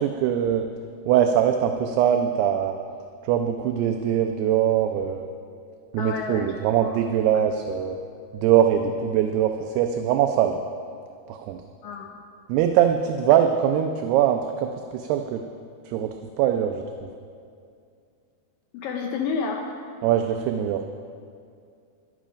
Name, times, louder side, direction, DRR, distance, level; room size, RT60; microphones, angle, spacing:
voice 1, 0.0-0.7 1.1-2.8 3.2-5.3 5.9-8.0 8.3-10.6 11.3-11.6 12.5-15.4 15.9-17.1 20.0-20.9, right 9 dB, 80° right, 6 dB, 2.5 m, -22 dB
voice 2, 6.0-6.5 6.8-7.0 11.8-12.2 18.7-19.7, left 5 dB, 80° left, 2 dB, 2.0 m, -30 dB
12.5 x 11.5 x 5.1 m, 2.3 s
omnidirectional pair, 4.9 m